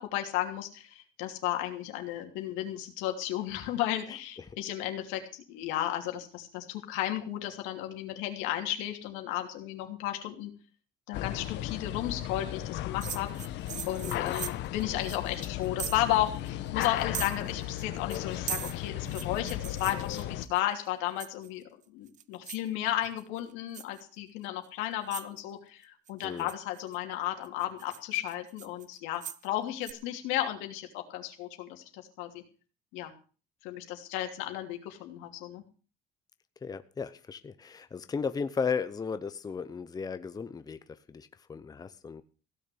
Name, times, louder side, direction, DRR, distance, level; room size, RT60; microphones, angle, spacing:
voice 1, 0.0-10.5 11.1-13.3 13.9-21.6 21.9-32.4 32.9-33.1 33.6-35.6, left 13 dB, 90° left, 4 dB, 3.0 m, -34 dB
sound 1, 11.1-20.5, left 13 dB, 70° left, 1.0 m, -36 dB
sound 2, 13.0-16.2 16.5-16.6 16.8-17.8 18.1-20.6 21.2-21.6 22.1-22.7 23.0-23.4 23.7-24.0 24.6-24.7 25.1-25.4 26.1-27.0 27.4-29.5 29.8-29.9, right 9 dB, 40° right, 0.8 m, -40 dB
voice 2, 14.0-14.3 26.2-26.5 36.6-42.2, left 5 dB, 20° left, 11 dB, 0.8 m, -35 dB
16.5 x 6.7 x 8.5 m, 0.38 s
cardioid pair, 130°, 19 cm